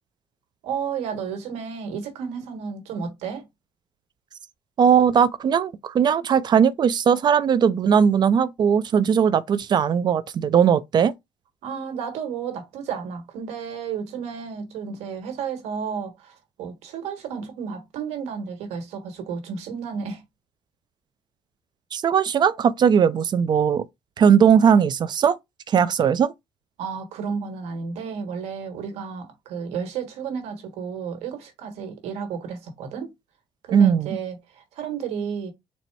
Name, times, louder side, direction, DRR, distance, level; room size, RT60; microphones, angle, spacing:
voice 1, 0.6-3.4 11.6-20.2 26.8-33.1 33.6-35.5, right 6 dB, 85° right, 1.4 m, -32 dB
voice 2, 4.8-11.1 21.9-23.8 24.2-25.4 25.7-26.3 33.7-34.1, right 7 dB, 45° right, 0.4 m, -19 dB
4.1 x 2.1 x 4.5 m
cardioid pair, 110°, 11 cm